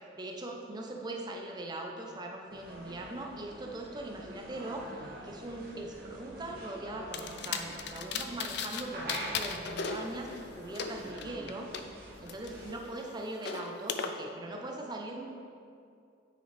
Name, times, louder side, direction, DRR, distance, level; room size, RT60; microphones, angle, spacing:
voice 1, 0.2-11.7 12.2-15.2, right 2 dB, 20° right, 1 dB, 0.6 m, -41 dB
sound 1, 2.5-12.8, right 1 dB, 50° right, 1.3 m, -45 dB
sound 2, 7.1-8.8 9.1-11.8 12.3-14.1, left 6 dB, 55° left, 0.4 m, -37 dB
8.9 x 5.4 x 3.3 m, 2.4 s
head